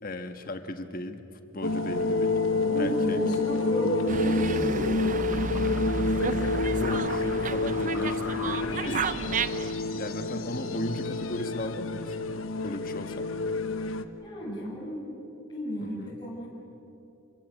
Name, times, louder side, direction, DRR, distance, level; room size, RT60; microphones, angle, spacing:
voice 1, 0.0-1.3 1.5-2.3 2.8-3.2 6.1-9.1 9.9-12.2 12.6-13.3 15.8-16.2, left 1 dB, 45° left, 7 dB, 1.7 m, -36 dB
sound 1, 1.6-14.0, left 3 dB, 90° left, 1.2 m, -29 dB
voice 2, 2.6-5.0 14.2-15.1 15.5-16.5, equal, 20° left, -6 dB, 7.2 m, -32 dB
Dog, 4.1-9.7, right 4 dB, 40° right, 0.7 m, -32 dB
27.5 x 24.0 x 8.3 m, 2.8 s
head